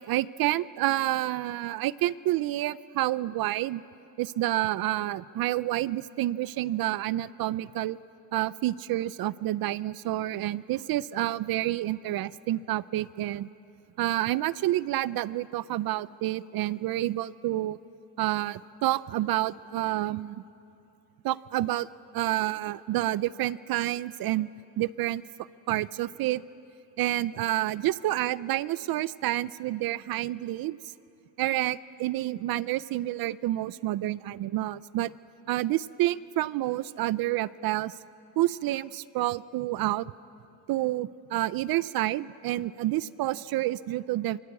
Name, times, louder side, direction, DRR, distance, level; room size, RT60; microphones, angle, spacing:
voice 1, 0.0-3.8 4.2-8.0 8.3-13.5 14.0-17.8 18.2-20.4 21.2-21.9 22.1-24.5 24.8-25.2 25.7-26.4 27.0-30.8 31.4-35.1 35.5-37.9 38.4-40.1 40.7-44.4, right 15 dB, 65° right, 18 dB, 0.5 m, -29 dB
27.0 x 26.5 x 8.3 m, 2.6 s
cardioid pair, 175°, 39 cm